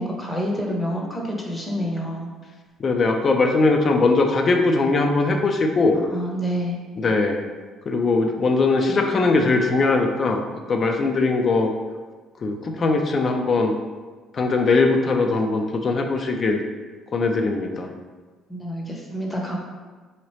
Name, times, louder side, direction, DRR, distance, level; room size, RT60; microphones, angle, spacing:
voice 1, 0.0-2.3 6.1-6.8 18.5-19.6, equal, 15° left, -1 dB, 0.8 m, -27 dB
voice 2, 2.8-6.0 7.0-7.4 7.9-10.4 10.7-11.7 12.4-13.7 14.3-16.6 17.1-17.9, left 3 dB, 40° left, 4 dB, 0.4 m, -20 dB
3.8 x 2.8 x 3.1 m, 1.4 s
cardioid pair, 100°, 0 cm